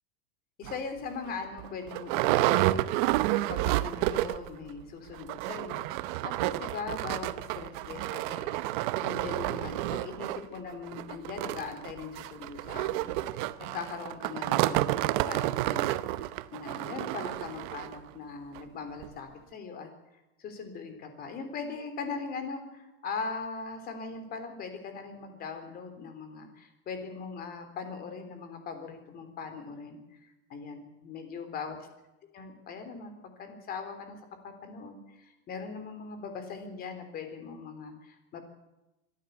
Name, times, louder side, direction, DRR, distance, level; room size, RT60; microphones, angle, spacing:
voice 1, 0.6-15.9 16.5-19.9 20.4-31.8 32.3-34.2 34.4-38.4, left 5 dB, 30° left, 7 dB, 3.7 m, -40 dB
sound 1, 0.6-0.8 1.3-1.4 1.6-4.5 4.8-4.9 5.2-18.0 18.6-18.7 19.0-19.1, right 16 dB, 50° right, 0.9 m, -30 dB
24.5 x 13.0 x 8.2 m, 0.99 s
supercardioid pair, 160°, 32 cm